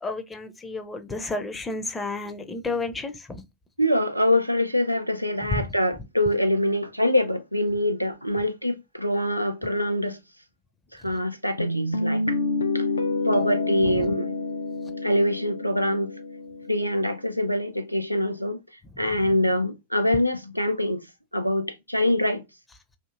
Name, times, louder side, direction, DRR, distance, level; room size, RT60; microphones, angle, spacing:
voice 1, 0.0-3.4 5.5-5.6 13.8-14.1, left 3 dB, 15° left, 0.5 m, -31 dB
voice 2, 3.8-10.2 10.9-12.4 12.7-12.8 13.2-14.3 15.0-16.1 16.7-18.6 19.0-21.0 21.3-22.4, left 1 dB, 90° right, 0.3 m, -24 dB
sound 1, 11.6-17.3, left 3 dB, 75° left, 0.3 m, -28 dB
2.8 x 2.6 x 2.2 m
figure-of-eight pair, 90°, 0 cm